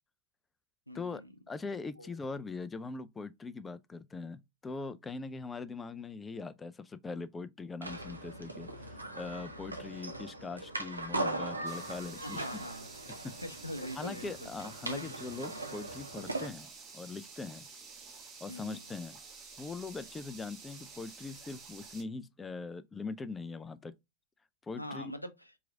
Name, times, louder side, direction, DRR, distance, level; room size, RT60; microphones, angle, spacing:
voice 1, 0.9-1.3 2.0-2.1 12.2-14.3 14.9-15.1 18.5-18.8 24.8-25.5, equal, 85° left, 0.6 m, -43 dB
voice 2, 1.5-12.5 13.2-13.4 13.9-17.7 18.4-19.2 19.6-23.9 24.6-25.1, left 4 dB, 15° left, 0.4 m, -41 dB
sound 1, 7.8-16.5, right 2 dB, 80° right, 0.7 m, -40 dB
sound 2, 11.6-22.0, right 5 dB, 30° right, 1.3 m, -51 dB
4.7 x 3.1 x 2.4 m
figure-of-eight pair, 90°, 0 cm